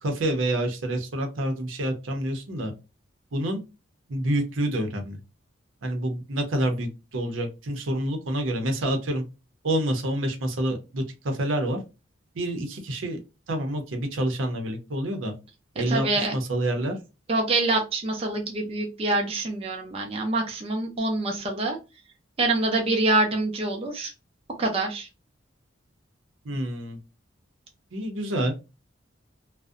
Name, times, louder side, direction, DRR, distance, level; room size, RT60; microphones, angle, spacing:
voice 1, 0.0-2.7 3.3-3.6 4.1-5.2 5.8-9.2 9.6-11.8 12.3-13.2 13.5-15.3 15.8-17.0 26.4-27.0 27.9-28.5, right 1 dB, 80° right, 4 dB, 0.6 m, -27 dB
voice 2, 15.9-16.3 17.3-21.8 22.4-24.1 24.6-25.1, right 2 dB, 30° right, 1 dB, 0.4 m, -25 dB
2.5 x 2.0 x 2.4 m, 0.27 s
head